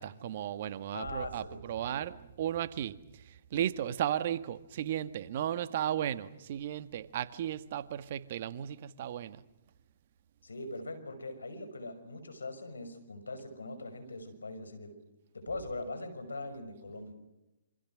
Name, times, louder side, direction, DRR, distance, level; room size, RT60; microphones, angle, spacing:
voice 1, 0.0-9.4, right 11 dB, 50° right, 1.6 m, -35 dB
voice 2, 0.9-2.0 10.4-15.0 15.3-17.1, left 2 dB, 85° left, 5.9 m, -41 dB
27.5 x 26.0 x 6.3 m
hypercardioid pair, 135°, 0 cm